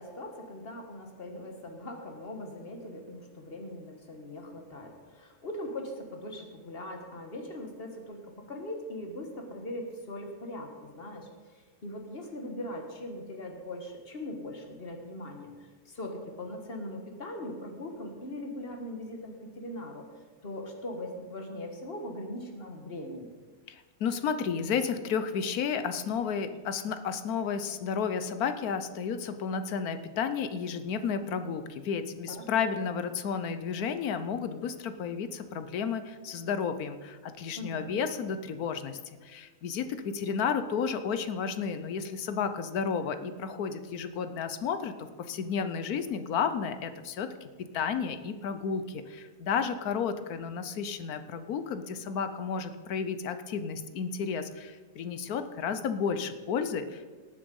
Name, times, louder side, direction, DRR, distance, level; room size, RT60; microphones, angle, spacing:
voice 1, 0.0-20.0 20.4-23.3 32.3-32.7 37.6-38.0, left 1 dB, 40° left, 3 dB, 1.8 m, -40 dB
voice 2, 23.7-47.5 47.7-57.1, left 6 dB, 70° left, 10 dB, 1.3 m, -32 dB
18.5 x 7.1 x 5.4 m, 1.4 s
omnidirectional pair, 1.7 m